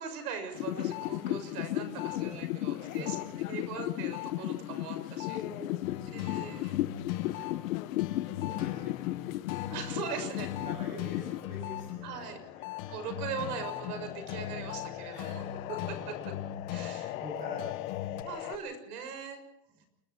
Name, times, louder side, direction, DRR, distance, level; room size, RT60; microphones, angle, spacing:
voice 1, 0.0-3.2 3.5-5.4 6.1-6.8 9.7-10.5 12.0-12.4 12.9-15.4 15.7-16.3 16.7-17.1 18.2-19.4, right 6 dB, 75° right, 7 dB, 6.8 m, -40 dB
sound 1, 0.5-11.8 12.2-18.6, left 16 dB, 55° left, 1.3 m, -36 dB
voice 2, 2.0-3.7 5.2-6.5 6.9-7.7 8.1-9.4 10.4-12.8 15.1-15.5 16.2-16.3 16.7-18.6 19.7-19.9, equal, 15° right, -3 dB, 7.4 m, -48 dB
sound 2, 5.8-18.2, left 11 dB, 35° left, 1.1 m, -41 dB
28.5 x 22.0 x 4.5 m, 0.80 s
supercardioid pair, 175°, 47 cm